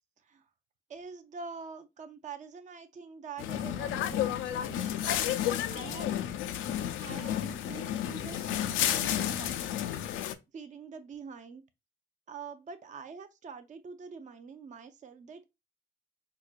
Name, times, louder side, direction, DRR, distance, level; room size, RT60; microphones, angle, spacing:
voice 1, 0.2-0.5 0.9-5.2 5.7-6.1 6.7-9.9 10.5-11.6 12.3-15.4, right 5 dB, 40° right, 0.5 m, -46 dB
sound 1, 3.4-10.3, left 11 dB, 85° left, 0.4 m, -31 dB
sound 2, 3.9-8.8, right 6 dB, 75° right, 0.9 m, -51 dB
4.7 x 2.2 x 2.4 m
cardioid pair, 90°, 20 cm